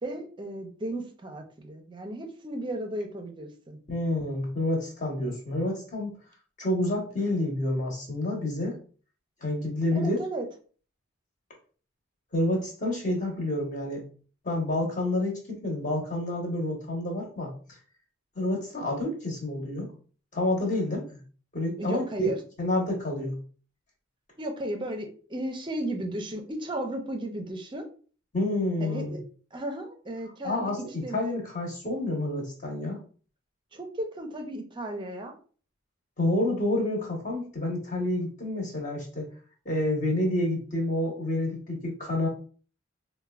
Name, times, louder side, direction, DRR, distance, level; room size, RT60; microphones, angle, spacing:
voice 1, 0.0-3.8 9.9-10.5 21.8-22.4 24.4-27.9 28.8-29.2 29.5-30.7 31.0-31.2 33.7-35.3, right 1 dB, 25° right, 4 dB, 0.5 m, -35 dB
voice 2, 3.9-6.2 6.6-8.8 9.4-10.2 12.3-14.0 14.4-17.5 18.3-19.9 20.3-21.0 21.5-22.3 22.6-23.3 28.3-29.2 30.4-30.8 31.1-33.0 36.2-39.3 39.6-42.3, left 1 dB, 35° left, -2 dB, 1.0 m, -28 dB
4.4 x 2.2 x 2.3 m, 0.40 s
head